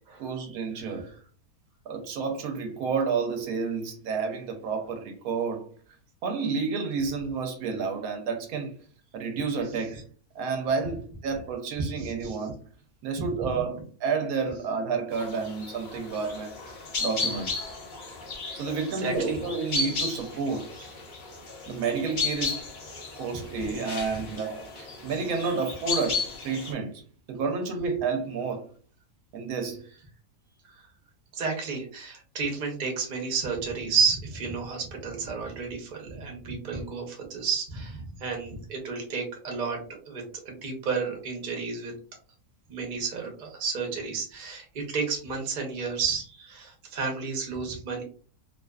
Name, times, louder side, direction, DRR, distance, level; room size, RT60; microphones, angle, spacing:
voice 1, 0.2-1.1 1.9-5.7 6.2-8.8 9.1-10.0 10.4-12.6 13.0-16.5 17.0-17.6 18.5-20.7 21.7-22.6 23.2-27.0 27.3-28.6 29.3-29.8, right 5 dB, 75° right, 1.0 m, -30 dB
voice 2, 12.0-12.4 13.2-13.3 19.0-19.4 24.1-24.2 31.3-39.8 40.0-41.9 42.7-48.0, right 5 dB, 45° right, 0.7 m, -31 dB
sound 1, 15.1-26.7, left 4 dB, 75° left, 0.4 m, -34 dB
2.5 x 2.4 x 2.2 m
omnidirectional pair, 1.6 m